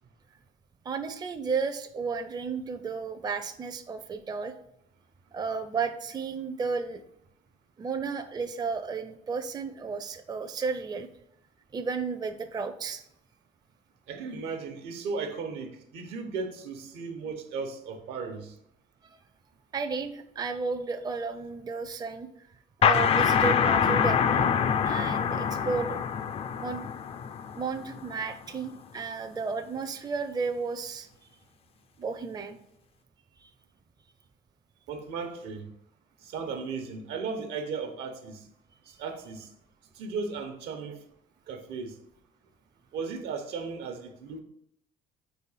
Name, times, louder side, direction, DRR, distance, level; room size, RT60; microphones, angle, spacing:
voice 1, 0.8-4.5 5.3-7.0 7.8-11.1 11.7-13.1 19.7-22.3 22.8-24.5 24.8-26.0 26.6-26.9 27.5-31.1 32.0-32.6 33.4-33.5, right 5 dB, 25° right, 8 dB, 0.5 m, -33 dB
voice 2, 14.1-18.5 34.9-35.7 36.2-38.4 38.9-39.5 40.0-41.0 41.5-41.9 42.9-44.4, right 5 dB, 85° right, 6 dB, 1.0 m, -36 dB
sound 1, 22.8-28.2, left 7 dB, 35° left, 0.4 m, -25 dB
4.8 x 4.1 x 5.5 m, 0.76 s
cardioid pair, 110°, 17 cm